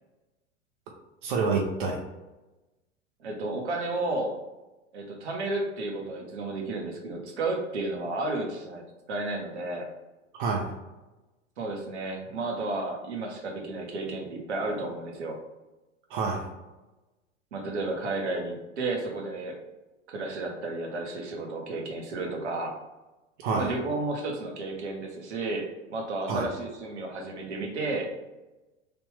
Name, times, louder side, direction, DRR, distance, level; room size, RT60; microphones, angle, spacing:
voice 1, 1.2-2.0 10.3-10.7 16.1-16.5 23.4-23.7 26.2-26.5, right 4 dB, 45° right, 1 dB, 0.5 m, -28 dB
voice 2, 3.2-4.4 4.9-8.8 9.1-9.9 11.6-15.4 17.5-19.6 20.1-22.7 23.5-28.1, right 2 dB, 65° right, 1 dB, 0.9 m, -32 dB
3.3 x 2.5 x 3.3 m, 1.1 s
figure-of-eight pair, 90°, 37 cm